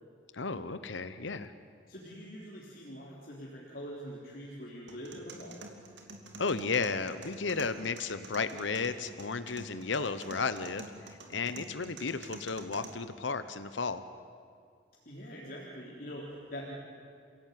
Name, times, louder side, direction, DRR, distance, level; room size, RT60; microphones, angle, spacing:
voice 1, 0.3-1.5 6.4-14.0, left 4 dB, 75° left, 12 dB, 0.9 m, -34 dB
voice 2, 1.9-5.6 15.1-16.7, equal, 45° left, -5 dB, 3.5 m, -44 dB
sound 1, 4.9-12.9, right 2 dB, 70° right, 2.8 m, -48 dB
28.5 x 16.5 x 9.5 m, 2.3 s
head